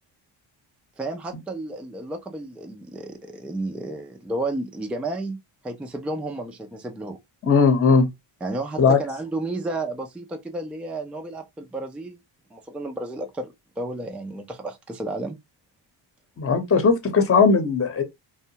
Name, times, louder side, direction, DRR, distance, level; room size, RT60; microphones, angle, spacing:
voice 1, 1.0-5.4 5.6-7.2 8.4-12.2 12.5-15.4, right 2 dB, 5° right, 0.4 m, -32 dB
voice 2, 7.4-8.1 8.8-9.0 16.4-18.0, left 4 dB, 30° left, 0.8 m, -18 dB
2.6 x 2.2 x 2.8 m
cardioid pair, 95°, 48 cm